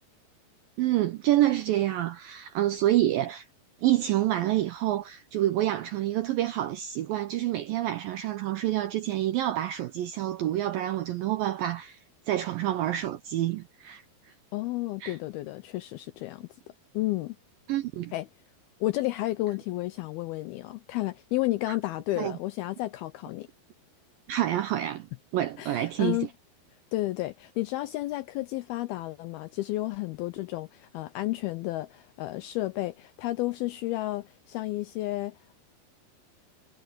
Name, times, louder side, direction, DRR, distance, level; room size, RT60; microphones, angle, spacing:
voice 1, 0.8-3.5 3.8-12.0 12.3-14.0 15.0-15.2 17.7-18.1 21.7-21.8 22.2-22.3 24.3-25.1 25.3-26.2, right 13 dB, 80° right, 2.0 m, -27 dB
voice 2, 14.5-16.5 16.9-17.4 18.1-18.3 18.8-23.5 25.6-26.3 26.9-35.6, left 17 dB, 80° left, 2.2 m, -32 dB
omnidirectional pair, 5.1 m